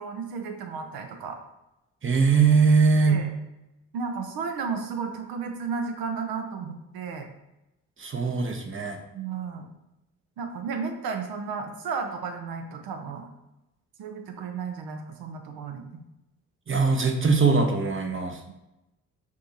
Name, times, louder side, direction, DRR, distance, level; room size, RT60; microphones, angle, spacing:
voice 1, 0.0-1.4 3.0-3.3 3.9-7.3 9.1-9.7 10.4-13.3 14.0-15.8 18.5-18.6, right 5 dB, 75° right, 5 dB, 0.8 m, -33 dB
voice 2, 2.0-3.2 8.0-9.0 16.7-18.4, right 4 dB, 35° right, 4 dB, 0.9 m, -21 dB
5.9 x 2.8 x 2.9 m, 0.94 s
supercardioid pair, 55°, 37 cm